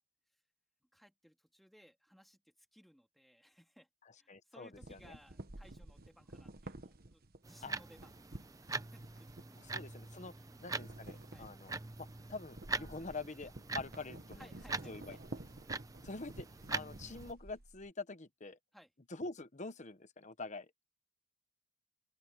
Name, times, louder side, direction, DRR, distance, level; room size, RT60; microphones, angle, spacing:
voice 1, 0.9-3.9 4.2-8.1 8.6-9.6 10.2-10.6 11.3-11.5 14.4-15.2 18.7-18.9, equal, ahead, 2.5 m, -62 dB
voice 2, 4.3-5.2 7.6-7.8 9.6-10.3 10.6-14.5 14.9-15.2 16.0-18.6 19.1-20.8, left 3 dB, 35° left, 1.1 m, -46 dB
sound 1, 4.7-10.2 10.5-17.9, right 2 dB, 50° right, 1.3 m, -52 dB
sound 2, 7.4-17.3, right 3 dB, 15° right, 0.6 m, -44 dB
open air
head